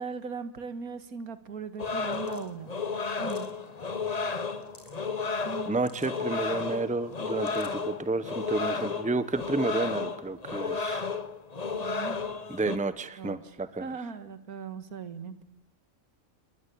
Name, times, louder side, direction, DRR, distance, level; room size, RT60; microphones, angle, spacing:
voice 1, 0.0-2.7 3.2-3.5 5.4-5.7 11.8-12.2 12.6-12.8 13.2-13.5 13.8-15.4, right 5 dB, 80° right, 12 dB, 2.1 m, -39 dB
sound 1, 1.7-1.8 2.0-2.5 3.1-3.7 4.4-5.0 5.7-6.2 7.1-7.8, left 1 dB, 15° left, 2.7 m, -54 dB
sound 2, 1.8-12.8, left 4 dB, 30° left, 1.1 m, -33 dB
voice 2, 5.7-11.1 12.5-13.9, right 3 dB, 5° right, 14 dB, 0.9 m, -31 dB
28.5 x 21.0 x 8.6 m, 0.80 s
omnidirectional pair, 1.5 m